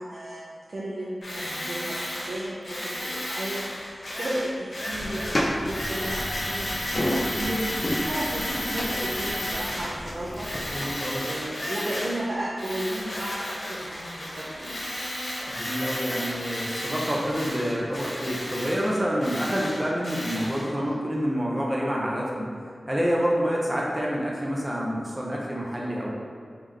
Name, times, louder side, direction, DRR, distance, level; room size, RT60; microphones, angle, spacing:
voice 1, 0.0-10.5 11.2-14.9, right 1 dB, 65° right, -8 dB, 0.6 m, -34 dB
Tools, 1.2-10.0 10.3-12.3 12.6-20.7, left 1 dB, 65° left, 0.8 m, -33 dB
sound 1, 4.9-10.9, equal, 35° left, 0.5 m, -32 dB
voice 2, 10.7-11.3 15.5-22.5 22.9-26.1, equal, 15° right, -4 dB, 0.6 m, -27 dB
3.6 x 3.4 x 3.2 m, 2.2 s
wide cardioid pair, 95°, 0 cm